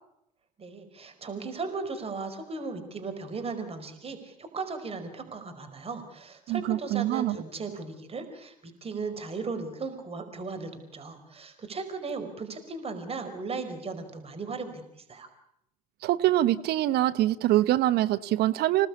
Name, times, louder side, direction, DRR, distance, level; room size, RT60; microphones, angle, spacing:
voice 1, 0.6-15.3, right 4 dB, 30° right, 7 dB, 5.1 m, -37 dB
voice 2, 6.5-7.4 16.0-18.9, right 14 dB, 55° right, 14 dB, 1.0 m, -24 dB
27.0 x 18.5 x 8.6 m, 0.78 s
hypercardioid pair, 70°, 20 cm